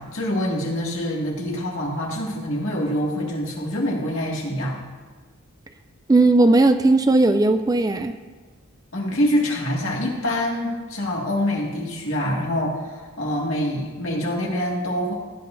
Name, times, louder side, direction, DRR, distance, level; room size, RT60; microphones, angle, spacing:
voice 1, 0.0-4.8 8.9-15.1, equal, 70° left, -2 dB, 2.1 m, -25 dB
voice 2, 6.1-8.1, right 2 dB, 15° right, 9 dB, 0.3 m, -17 dB
16.5 x 9.6 x 2.6 m, 1.4 s
head